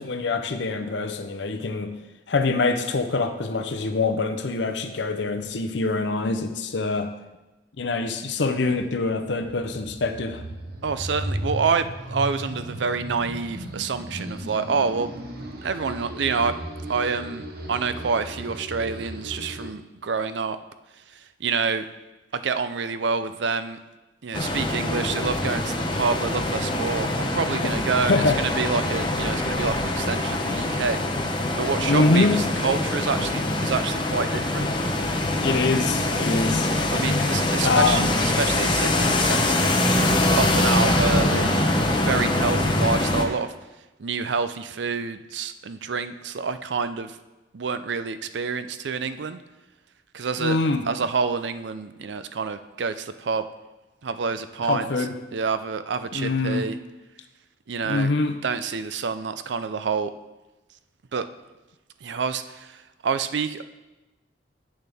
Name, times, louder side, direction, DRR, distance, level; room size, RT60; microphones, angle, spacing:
voice 1, 0.0-1.9 2.3-7.1 7.8-10.4 27.5-27.7 28.0-28.4 31.8-32.4 35.4-36.7 37.6-38.1 50.4-50.9 54.6-55.1 56.1-56.7 57.8-58.4, left 3 dB, 70° left, 7 dB, 0.7 m, -24 dB
sound 1, 8.8-19.7, right 1 dB, 55° right, 1.0 m, -36 dB
voice 2, 10.8-15.1 15.6-16.5 16.9-20.6 21.4-21.9 22.3-23.8 24.2-31.0 31.6-34.7 36.9-40.0 40.4-41.7 42.0-43.5 44.0-47.2 47.5-49.4 50.1-50.6 50.9-53.5 54.0-54.9 55.3-56.8 57.7-58.1 58.4-60.1 61.1-61.2 62.0-63.6, right 5 dB, 70° right, 12 dB, 0.5 m, -27 dB
sound 2, 24.3-43.2, left 1 dB, 25° left, 0.9 m, -24 dB
10.5 x 7.8 x 3.5 m, 1.1 s
head